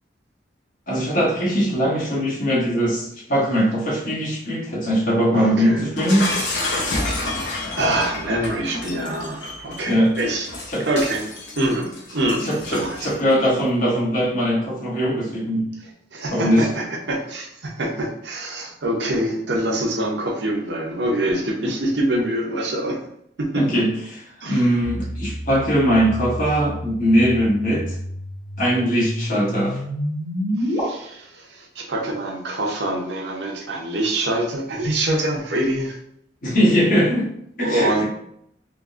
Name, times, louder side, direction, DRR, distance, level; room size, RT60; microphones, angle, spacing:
voice 1, 0.9-6.3 9.9-10.1 10.7-10.9 12.4-15.7 16.3-16.7 23.5-24.2 24.5-28.0 28.6-29.8 36.4-37.3 37.6-38.0, equal, 50° left, -5 dB, 1.1 m, -20 dB
voice 2, 5.3-5.9 7.1-10.5 10.9-11.3 11.6-13.1 16.1-23.0 23.4-23.8 24.4-24.7 30.6-36.0 37.6-38.0, right 1 dB, 70° right, 1 dB, 0.7 m, -25 dB
Shatter, 6.0-13.3, left 2 dB, 70° left, 0.8 m, -29 dB
sound 1, 24.8-30.8, equal, 35° left, 1.3 m, -30 dB
3.6 x 2.6 x 2.4 m, 0.72 s
head